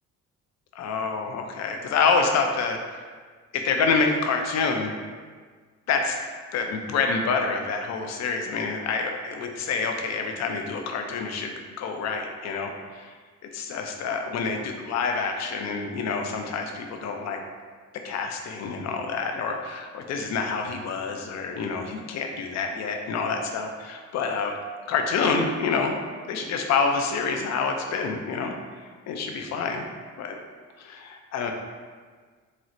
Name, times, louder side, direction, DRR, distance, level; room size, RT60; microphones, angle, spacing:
voice 1, 0.8-3.0 3.5-4.9 5.9-6.2 6.5-11.5 11.8-13.1 13.5-17.4 17.9-24.5 24.9-26.0 26.3-28.5 29.1-29.8 30.2-30.4 30.8-31.5, left 4 dB, 60° left, 4 dB, 0.5 m, -27 dB
4.2 x 2.1 x 2.5 m, 1.6 s
cardioid pair, 90°, 30 cm